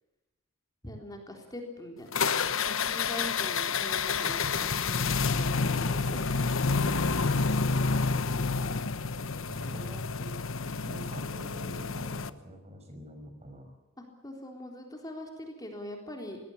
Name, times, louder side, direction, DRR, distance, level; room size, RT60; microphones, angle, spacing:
voice 1, 0.8-2.3 2.7-6.5 7.9-8.3 14.0-16.4, left 1 dB, 20° left, 2 dB, 3.8 m, -43 dB
sound 1, 2.1-12.3, left 4 dB, 65° left, 1.1 m, -29 dB
voice 2, 7.4-8.1 9.5-10.3 10.8-13.7, right 1 dB, 30° right, 5 dB, 5.7 m, -46 dB
25.0 x 19.5 x 7.2 m, 1.0 s
head